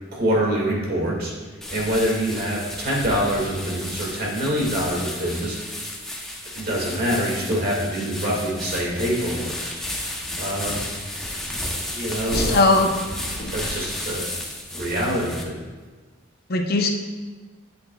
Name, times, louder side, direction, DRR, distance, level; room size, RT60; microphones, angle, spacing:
voice 1, 0.1-1.3 1.7-5.9 6.6-9.6 10.4-10.9 11.9-12.7 13.5-14.3 14.7-15.6, equal, 50° right, -3 dB, 2.1 m, -25 dB
sound 1, 1.6-15.4, left 1 dB, ahead, 0.9 m, -32 dB
voice 2, 12.3-12.9 13.4-13.5 16.5-16.9, left 3 dB, 50° left, 3 dB, 0.7 m, -19 dB
11.5 x 7.9 x 2.4 m, 1.3 s
head